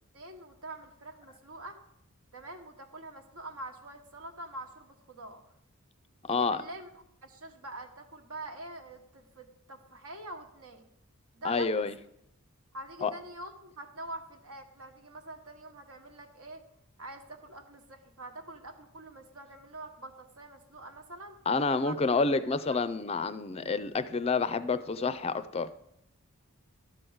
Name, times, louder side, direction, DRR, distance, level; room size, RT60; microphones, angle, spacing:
voice 1, 0.1-1.8 2.3-5.4 6.3-10.9 11.3-11.9 12.7-16.6 17.0-21.4 21.8-21.9, right 1 dB, 80° right, 5 dB, 1.3 m, -45 dB
voice 2, 6.3-6.6 11.4-12.0 13.0-13.1 21.5-25.7, left 4 dB, 25° left, 12 dB, 0.4 m, -28 dB
12.5 x 4.6 x 8.0 m, 0.80 s
head